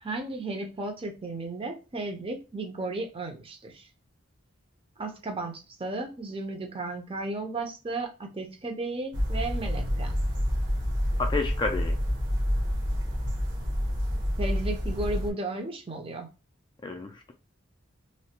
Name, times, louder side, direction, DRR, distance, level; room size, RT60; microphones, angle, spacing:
voice 1, 0.0-3.9 5.0-10.2 14.4-16.3, right 2 dB, 25° right, 0.6 m, -34 dB
sound 1, 9.1-15.3, equal, 60° right, 1.1 m, -28 dB
voice 2, 11.2-12.0 16.8-17.3, left 3 dB, 20° left, 0.3 m, -30 dB
3.1 x 2.2 x 2.8 m
head